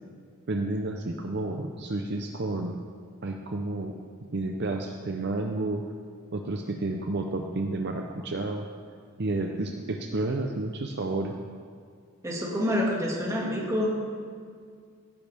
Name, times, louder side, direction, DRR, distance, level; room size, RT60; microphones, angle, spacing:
voice 1, 0.5-2.8 3.2-4.0 4.3-5.8 6.3-8.7 9.2-11.3, right 2 dB, 50° right, 3 dB, 0.6 m, -30 dB
voice 2, 12.2-14.0, equal, 15° right, -2 dB, 1.9 m, -27 dB
17.0 x 10.5 x 3.4 m, 2.1 s
head